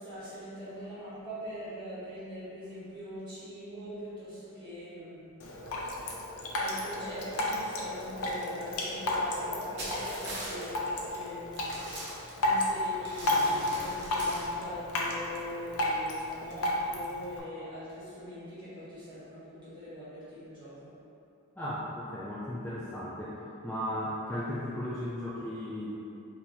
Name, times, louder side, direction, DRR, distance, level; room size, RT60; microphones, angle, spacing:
voice 1, 0.0-5.2 5.9-6.1 6.5-20.9, equal, 20° right, -13 dB, 1.4 m, -42 dB
Drip, 5.4-17.4, left 1 dB, 80° left, 0.5 m, -32 dB
sound 1, 9.8-10.6 11.1-11.2 11.5-12.7 13.0-14.4, right 1 dB, 50° right, 0.9 m, -40 dB
voice 2, 21.6-26.1, equal, 10° left, -10 dB, 0.3 m, -36 dB
4.5 x 2.7 x 2.7 m, 2.8 s
head